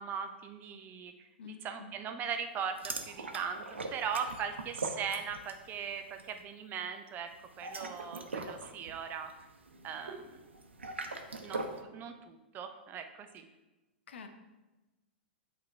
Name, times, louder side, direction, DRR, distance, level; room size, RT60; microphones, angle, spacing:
voice 1, 0.0-3.6 3.9-7.3 7.6-9.3 9.8-10.3 11.4-13.4, right 7 dB, 30° right, 7 dB, 0.6 m, -39 dB
voice 2, 1.4-1.9 14.1-14.3, left 5 dB, 70° left, 7 dB, 0.8 m, -47 dB
sound 1, 2.8-5.7 6.0-6.3 7.4-11.8, right 3 dB, 90° right, 0.7 m, -41 dB
7.6 x 3.6 x 4.4 m, 1.1 s
hypercardioid pair, 110°, 6 cm